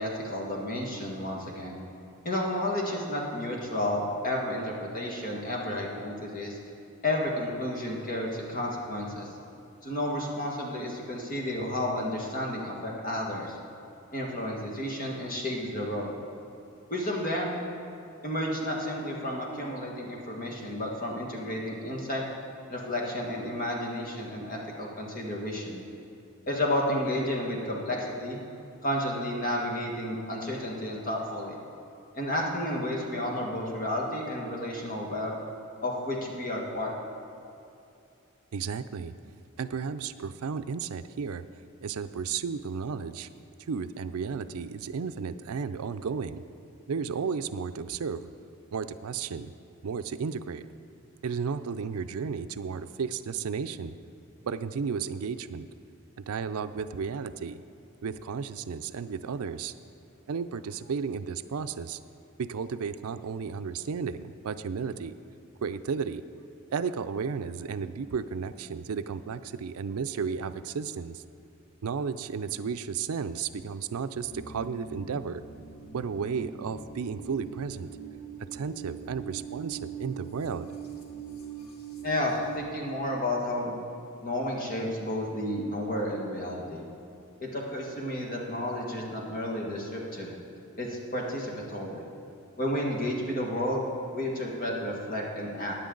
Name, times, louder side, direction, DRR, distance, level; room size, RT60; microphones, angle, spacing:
voice 1, 0.0-1.8 2.3-6.6 7.0-9.3 9.8-13.6 14.1-16.1 16.9-17.6 18.2-22.2 22.7-25.8 26.5-28.4 28.8-31.6 32.1-35.3 35.8-36.9 82.0-83.7 84.2-86.8 87.4-90.4 90.8-92.0 92.6-93.8 94.1-95.7, left 1 dB, 40° left, -1 dB, 1.8 m, -31 dB
voice 2, 38.5-39.1 39.6-41.4 41.8-43.3 43.7-46.4 46.9-48.3 48.7-49.5 49.8-50.7 51.2-53.9 54.4-55.7 56.3-57.6 58.0-59.7 60.3-62.0 62.4-65.1 65.6-66.2 66.7-71.2 71.8-75.4 75.9-77.9 78.5-80.7, right 6 dB, 80° right, 12 dB, 0.4 m, -33 dB
sound 1, 74.1-82.6, right 7 dB, 75° left, 1.5 m, -42 dB
15.5 x 9.9 x 3.9 m, 2.7 s
head